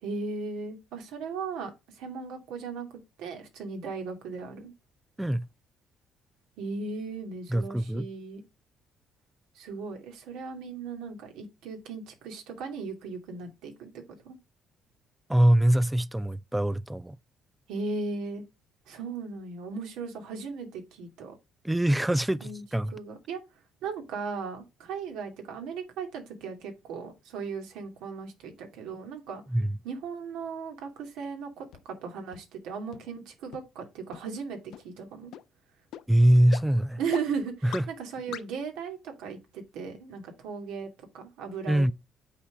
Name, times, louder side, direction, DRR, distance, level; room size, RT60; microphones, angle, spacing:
voice 1, 0.0-2.9 3.2-4.7 6.6-8.4 9.5-13.9 14.2-14.4 17.7-18.4 18.9-21.3 22.4-22.6 22.9-23.4 23.8-29.4 29.8-35.3 37.0-40.9 41.1-41.8, right 5 dB, 85° right, 2.4 m, -37 dB
voice 2, 7.5-8.1 15.3-17.2 21.6-22.9 29.5-29.8 36.1-37.0 37.6-37.8 41.7-41.9, right 1 dB, 5° right, 0.4 m, -23 dB
sound 1, 31.7-31.8 32.3-32.4 32.9-33.0 33.5-33.6 34.1-34.2 34.7-34.8 35.3-35.4 35.9-36.0 36.5-36.6 37.1-37.2 37.7-37.8 38.3-38.4, left 11 dB, 75° left, 0.8 m, -38 dB
8.4 x 4.3 x 5.0 m
cardioid pair, 105°, 0 cm